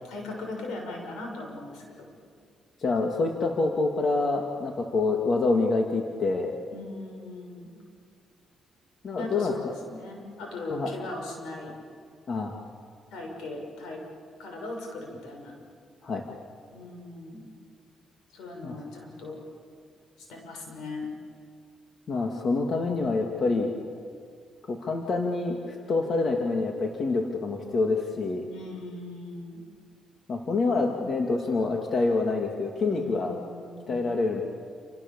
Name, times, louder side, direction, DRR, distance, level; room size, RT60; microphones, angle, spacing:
voice 1, 0.1-2.1 6.7-7.7 9.2-11.8 13.1-14.0 14.4-15.6 16.7-17.5 18.3-19.4 20.2-21.1 28.5-29.6 32.8-34.0, left 2 dB, 90° left, 2 dB, 6.6 m, -39 dB
voice 2, 2.8-6.5 9.0-9.5 10.7-10.9 12.3-12.6 16.0-16.2 18.6-18.8 22.1-23.7 24.7-28.4 30.3-33.3 33.9-34.4, left 3 dB, 50° left, 2 dB, 2.5 m, -26 dB
28.5 x 27.5 x 7.3 m, 2.2 s
cardioid pair, 90°, 0 cm